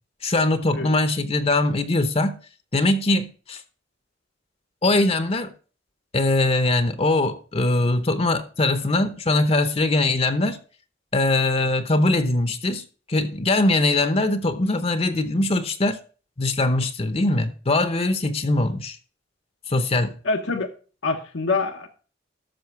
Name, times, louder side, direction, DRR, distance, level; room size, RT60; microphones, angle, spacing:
voice 1, 0.2-2.4 2.7-3.6 4.8-5.5 6.1-10.6 11.1-12.8 13.1-16.0 16.4-19.0 19.7-20.2, left 2 dB, 35° left, 0.8 m, -21 dB
voice 2, 20.2-20.7 21.0-21.9, left 3 dB, 75° left, 1.0 m, -25 dB
13.0 x 6.3 x 4.6 m
head